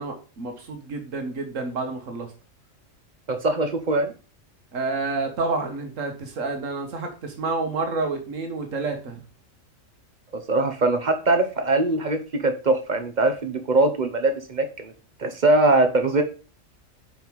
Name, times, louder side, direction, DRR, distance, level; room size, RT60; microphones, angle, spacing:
voice 1, 0.0-2.3 4.7-9.2, right 3 dB, 70° right, 4 dB, 1.7 m, -29 dB
voice 2, 3.3-4.1 10.3-14.9 15.2-16.2, right 2 dB, 40° right, 8 dB, 0.9 m, -22 dB
5.6 x 5.5 x 4.6 m, 0.35 s
omnidirectional pair, 1.4 m